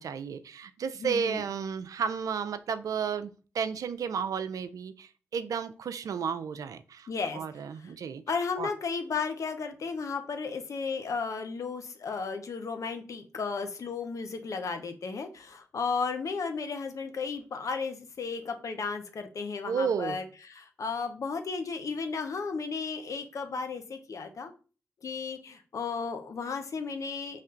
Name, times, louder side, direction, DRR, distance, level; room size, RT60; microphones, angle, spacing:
voice 1, 0.0-7.1 7.3-8.2 8.6-8.7 19.7-20.2, right 6 dB, 70° right, 11 dB, 0.4 m, -32 dB
voice 2, 1.0-1.5 7.1-7.9 8.3-24.5 25.0-27.4, left 5 dB, 60° left, 7 dB, 0.8 m, -34 dB
4.3 x 3.3 x 3.8 m, 0.35 s
supercardioid pair, 45°, 6 cm